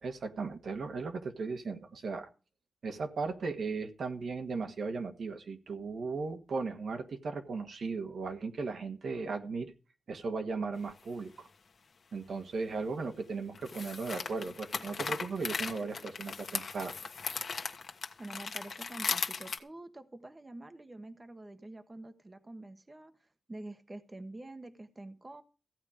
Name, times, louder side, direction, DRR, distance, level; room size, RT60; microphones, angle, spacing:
voice 1, 0.0-2.3 2.8-9.7 10.1-11.5 12.1-17.1, right 4 dB, 70° right, 6 dB, 1.6 m, -37 dB
sound 1, 10.9-11.0 13.5-19.6, left 5 dB, 55° left, 1.4 m, -37 dB
voice 2, 18.2-25.4, right 2 dB, 25° right, 9 dB, 1.1 m, -47 dB
15.0 x 8.9 x 5.1 m, 0.34 s
wide cardioid pair, 110°, 0 cm